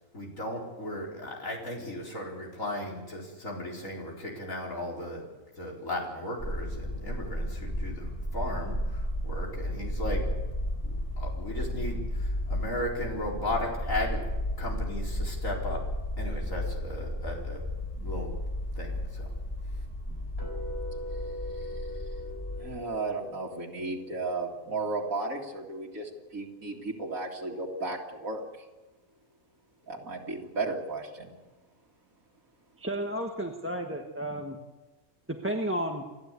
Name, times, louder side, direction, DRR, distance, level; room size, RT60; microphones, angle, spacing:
voice 1, 0.1-5.3 5.6-10.3 10.8-14.2 14.6-15.8 16.2-17.6 18.0-18.3 18.8-19.3, left 1 dB, 70° left, -2 dB, 4.8 m, -36 dB
sound 1, 6.4-22.8, left 1 dB, 10° left, 2.3 m, -33 dB
sound 2, 20.4-26.5, left 1 dB, 45° left, 6.5 m, -43 dB
voice 2, 22.6-28.4 29.9-31.3, right 3 dB, 75° right, -3 dB, 2.8 m, -34 dB
voice 3, 32.8-34.6 35.3-36.0, right 1 dB, 10° right, 1 dB, 1.3 m, -32 dB
29.5 x 12.5 x 8.4 m, 1.2 s
omnidirectional pair, 1.5 m